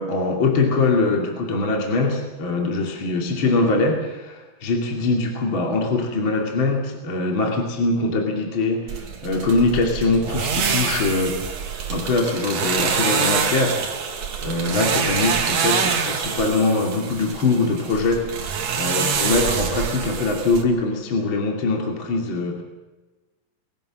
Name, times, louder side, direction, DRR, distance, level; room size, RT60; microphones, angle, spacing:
voice 1, 0.0-8.9 9.2-11.6 11.9-13.8 14.4-18.4 18.8-22.6, left 3 dB, 35° left, 1 dB, 3.0 m, -22 dB
sound 1, 8.9-20.6, right 6 dB, 55° right, 2.8 m, -25 dB
22.0 x 17.0 x 7.5 m, 1.2 s
omnidirectional pair, 4.1 m